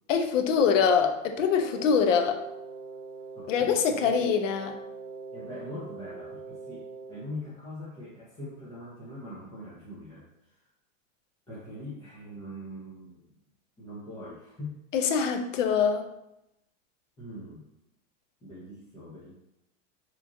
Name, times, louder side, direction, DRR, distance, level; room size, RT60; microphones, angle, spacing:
voice 1, 0.1-2.4 3.5-4.8 14.9-16.1, left 6 dB, 70° left, 5 dB, 0.6 m, -24 dB
Wind instrument woodwind instrument, 1.5-7.3, right 4 dB, 55° right, 0.7 m, -42 dB
voice 2, 3.3-4.1 5.3-10.6 11.5-13.3 13.8-14.8 17.2-17.6 18.4-19.3, left 1 dB, 10° left, -10 dB, 0.5 m, -42 dB
3.0 x 2.5 x 3.6 m, 0.86 s
supercardioid pair, 150°, 38 cm